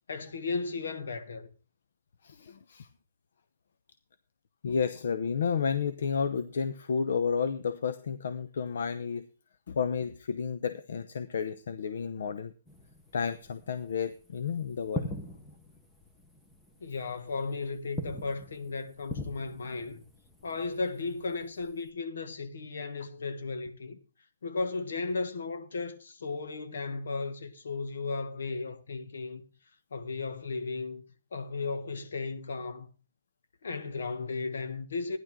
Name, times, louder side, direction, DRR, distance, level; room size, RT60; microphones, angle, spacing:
voice 1, 0.1-1.5 16.8-20.0 20.4-24.0 24.4-29.4 29.9-31.0 31.3-32.9 33.6-35.2, left 3 dB, 85° left, 1.8 m, -35 dB
voice 2, 2.2-2.9 4.6-9.2 9.7-12.5 13.1-15.1, left 6 dB, 65° left, 0.8 m, -31 dB
sound 1, 12.7-21.9, left 2 dB, 5° left, 1.0 m, -43 dB
15.0 x 10.5 x 3.7 m
hypercardioid pair, 165°, 0 cm